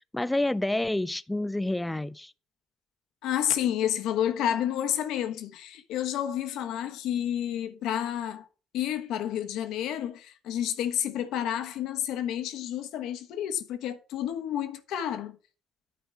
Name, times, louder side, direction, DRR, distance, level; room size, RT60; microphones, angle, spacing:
voice 1, 0.1-2.3, left 1 dB, 10° left, 0.4 m, -28 dB
voice 2, 3.2-8.4 8.7-15.3, left 10 dB, 70° left, 1.2 m, -30 dB
10.5 x 4.2 x 4.7 m
hypercardioid pair, 65°, 0 cm